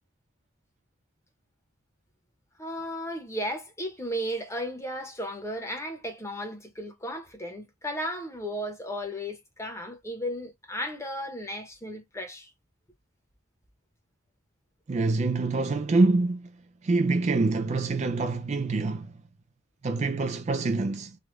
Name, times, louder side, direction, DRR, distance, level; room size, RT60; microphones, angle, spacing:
voice 1, 2.6-12.5, equal, 15° left, 0.9 m, -35 dB
voice 2, 14.9-16.5 16.8-19.1 19.8-21.2, right 3 dB, 35° right, 0.3 m, -25 dB
3.3 x 2.3 x 3.0 m
head